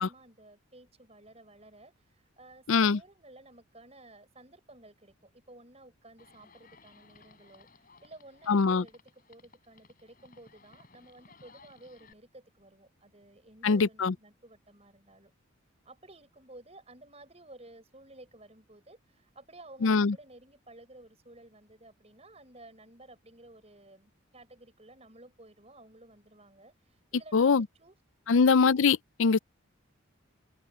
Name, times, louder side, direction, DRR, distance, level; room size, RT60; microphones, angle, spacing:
voice 1, 0.0-7.7 8.0-15.3 15.8-28.0 28.3-28.5, right 2 dB, 30° right, 6.5 m, -54 dB
voice 2, 2.7-3.0 8.5-8.8 13.6-14.1 19.8-20.2 27.3-27.6 28.3-29.4, left 5 dB, 70° left, 0.5 m, -23 dB
Livestock farm animals working animals, 6.2-12.1, left 4 dB, 40° left, 6.7 m, -59 dB
open air
head